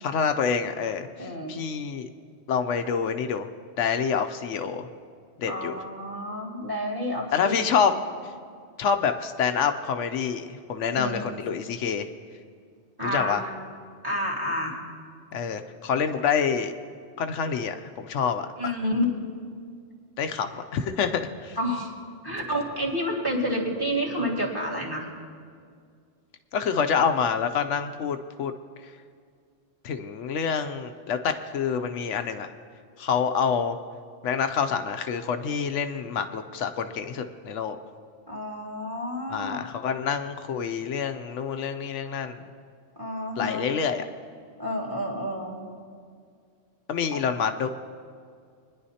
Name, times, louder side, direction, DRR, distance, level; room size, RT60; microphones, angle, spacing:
voice 1, 0.0-2.1 2.5-3.5 3.8-4.9 5.4-5.8 7.3-7.9 8.8-12.1 13.1-13.4 15.3-16.7 17.2-18.5 20.2-21.6 26.5-28.5 29.8-32.5 33.0-33.8 34.2-37.8 39.3-42.4 43.4-44.0 46.9-47.7, left 6 dB, 80° left, 8 dB, 1.0 m, -27 dB
voice 2, 1.2-1.5 5.5-8.0 10.9-11.3 13.0-13.5 14.0-14.7 18.6-19.0 21.6-21.9 22.2-25.0 38.3-39.6 43.0-43.7 44.6-45.6 47.1-47.2, equal, 20° right, -2 dB, 2.0 m, -30 dB
23.5 x 10.5 x 2.8 m, 2.2 s
omnidirectional pair, 1.3 m